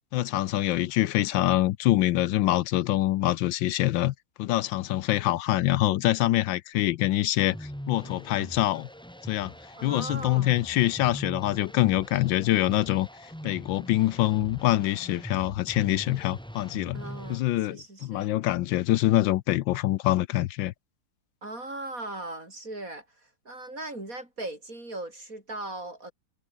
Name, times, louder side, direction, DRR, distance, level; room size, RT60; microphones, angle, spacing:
voice 1, 0.1-4.1 4.4-8.9 9.3-9.5 9.8-17.0 17.3-20.7, left 15 dB, 80° left, 1.3 m, -25 dB
sound 1, 7.4-17.4, equal, ahead, 4.8 m, -42 dB
voice 2, 9.8-10.6 16.9-18.4 21.4-26.1, right 2 dB, 45° right, 7.0 m, -39 dB
omnidirectional pair, 2.1 m